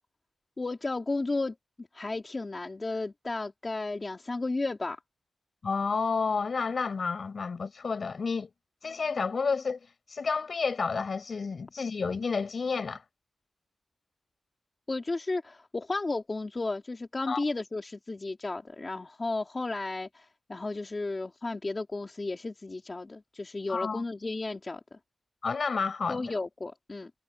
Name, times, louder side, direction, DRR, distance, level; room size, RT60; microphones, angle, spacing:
voice 1, 0.6-5.0 14.9-25.0 26.1-27.1, left 3 dB, 25° left, 2.5 m, -33 dB
voice 2, 5.6-8.5 8.8-13.0 17.3-17.4 23.7-24.0 25.4-26.3, left 5 dB, 45° left, 6.7 m, -30 dB
wide cardioid pair, 140°, 0 cm